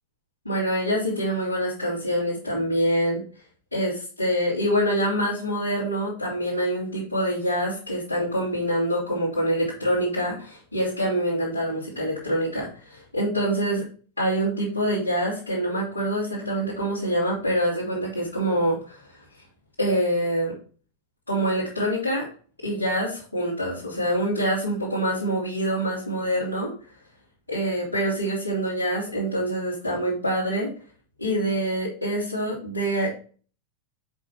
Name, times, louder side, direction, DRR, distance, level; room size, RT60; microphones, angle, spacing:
voice 1, 0.4-3.2 3.7-13.8 14.2-19.2 19.8-20.5 21.3-22.3 22.6-26.7 27.5-30.7 31.2-33.1, equal, 80° left, -10 dB, 3.1 m, -25 dB
7.6 x 6.2 x 2.9 m, 0.40 s
figure-of-eight pair, 90°, 0 cm